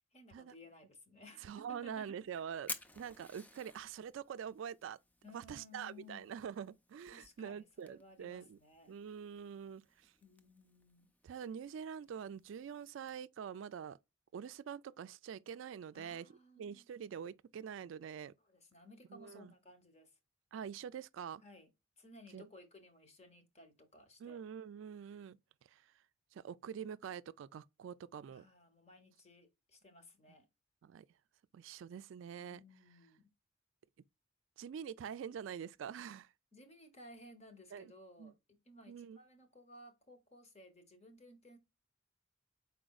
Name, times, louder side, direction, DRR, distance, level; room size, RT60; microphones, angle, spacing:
voice 1, 0.1-2.2 5.2-6.4 7.1-9.0 10.2-11.1 15.9-16.9 18.4-20.1 21.4-21.7 22.0-24.4 28.3-30.5 32.4-33.3 36.5-41.6, left 1 dB, 35° left, 1.0 m, -58 dB
voice 2, 1.4-5.0 5.3-8.6 8.9-10.1 11.2-14.0 14.3-16.3 16.6-18.3 19.1-19.5 20.5-21.4 22.3-22.4 24.2-25.4 25.7-25.8 26.3-28.5 30.8-31.1 31.5-32.6 34.6-36.3 37.7-37.8 38.2-38.3 38.9-39.2, right 8 dB, 75° right, 0.3 m, -45 dB
Fire, 1.6-13.1, left 1 dB, 10° left, 0.4 m, -54 dB
5.0 x 4.2 x 2.3 m
head